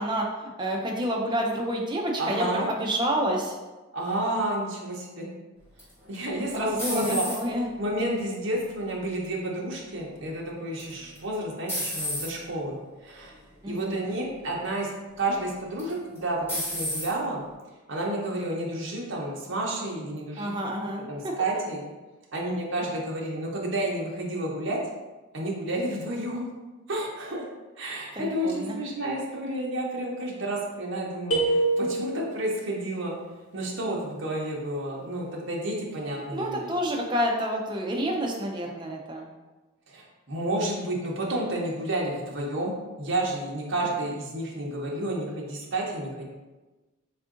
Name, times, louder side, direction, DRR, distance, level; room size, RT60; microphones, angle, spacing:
voice 1, 0.0-3.6 6.3-7.7 13.6-14.0 20.4-21.3 28.1-28.8 36.3-39.3, equal, 20° right, 0 dB, 0.4 m, -29 dB
voice 2, 2.2-2.7 3.9-5.3 6.1-7.2 7.8-12.8 13.0-13.3 13.7-14.9 15.2-17.4 17.9-20.5 21.1-21.8 22.3-24.8 25.3-26.5 26.9-27.4 27.8-33.2 33.5-36.7 39.9-46.2, right 1 dB, 55° right, -2 dB, 0.7 m, -30 dB
sound 1, 5.8-7.7 8.3-8.8 10.8-11.2 11.7-12.3 13.1-13.3 13.8-13.9 15.8-16.2 16.5-17.1, left 1 dB, 10° left, 1.3 m, -32 dB
sound 2, 31.3-32.5, right 2 dB, 75° left, 1.1 m, -25 dB
3.5 x 2.5 x 3.7 m, 1.2 s
head